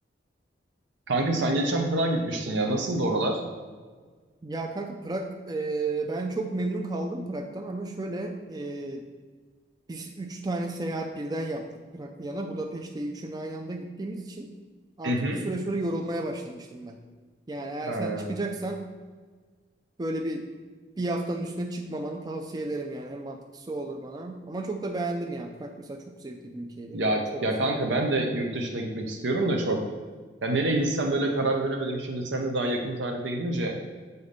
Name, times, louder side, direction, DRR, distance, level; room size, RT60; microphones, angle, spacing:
voice 1, 1.1-3.4 15.0-15.4 17.9-18.4 26.9-29.9 30.4-33.7, right 1 dB, 75° right, 2 dB, 0.7 m, -27 dB
voice 2, 4.4-9.0 9.9-14.5 15.0-17.0 17.5-18.8 20.0-20.5 21.0-27.0 27.3-28.0 30.8-31.2, right 2 dB, 20° right, 4 dB, 0.4 m, -33 dB
6.9 x 4.0 x 5.2 m, 1.5 s
head